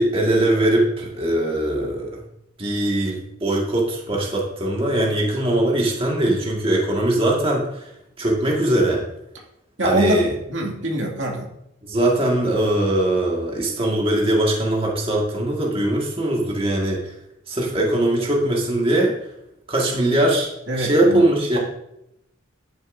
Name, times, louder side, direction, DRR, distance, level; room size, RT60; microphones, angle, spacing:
voice 1, 0.0-2.1 2.6-7.7 8.2-9.0 9.8-10.3 11.8-17.0 17.5-19.1 19.7-20.5 20.7-21.6, right 1 dB, 30° right, -2 dB, 1.8 m, -21 dB
voice 2, 9.8-10.2 10.5-11.5 20.7-21.2, equal, 70° right, -1 dB, 2.2 m, -23 dB
11.0 x 9.5 x 2.6 m, 0.84 s
head